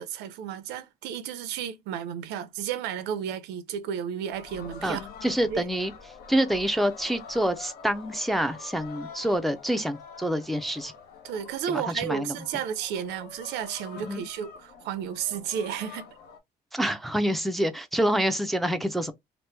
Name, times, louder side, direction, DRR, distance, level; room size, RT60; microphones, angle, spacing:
voice 1, 0.0-5.0 5.5-5.6 11.2-16.1, right 9 dB, 90° right, 0.6 m, -33 dB
sound 1, 4.3-16.4, left 5 dB, 70° left, 0.8 m, -46 dB
voice 2, 4.8-5.9 6.3-10.9 11.7-12.4 14.0-14.2 16.7-19.1, right 1 dB, ahead, 0.4 m, -27 dB
2.9 x 2.1 x 3.2 m
cardioid pair, 110°, 17 cm